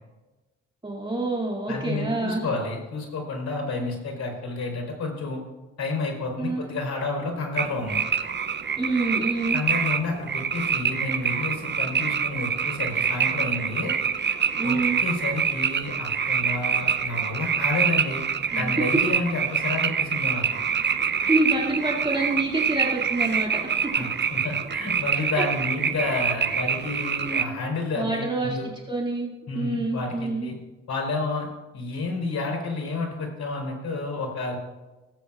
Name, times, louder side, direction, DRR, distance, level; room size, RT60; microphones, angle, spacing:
voice 1, 0.8-2.5 3.8-4.0 6.4-6.8 8.8-9.6 14.6-15.0 18.5-18.6 21.3-23.6 27.2-27.6 27.9-28.6 28.9-30.5, right 2 dB, 15° right, -3 dB, 2.4 m, -27 dB
voice 2, 1.7-5.4 5.8-8.0 9.5-13.9 14.6-18.2 18.5-20.6 23.9-28.6 29.5-30.5 30.9-31.5 31.7-34.6, left 3 dB, 60° left, 1 dB, 3.9 m, -30 dB
sound 1, 7.6-27.4, right 7 dB, 35° right, 0.6 m, -26 dB
18.0 x 8.2 x 2.4 m, 1.1 s
supercardioid pair, 65°, 31 cm